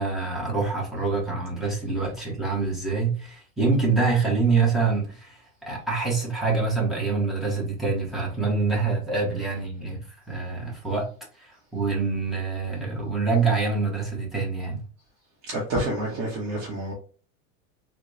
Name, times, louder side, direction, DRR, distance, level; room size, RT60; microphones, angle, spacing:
voice 1, 0.0-10.0 10.3-11.1 11.4-14.8, right 4 dB, ahead, 0.7 m, -25 dB
voice 2, 15.5-16.9, right 1 dB, 40° right, 0.8 m, -28 dB
3.7 x 2.1 x 3.1 m
supercardioid pair, 160°, 38 cm